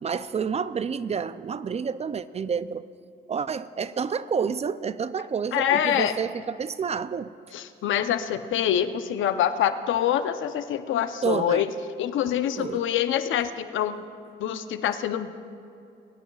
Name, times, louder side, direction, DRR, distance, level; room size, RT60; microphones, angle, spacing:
voice 1, 0.0-2.9 3.3-7.3 11.2-11.7 12.6-12.8, right 6 dB, 35° right, 0.4 m, -29 dB
voice 2, 5.5-6.1 7.5-11.7 12.0-14.0 14.4-15.3, left 10 dB, 75° left, 0.7 m, -25 dB
22.0 x 12.0 x 2.4 m
cardioid pair, 90°, 20 cm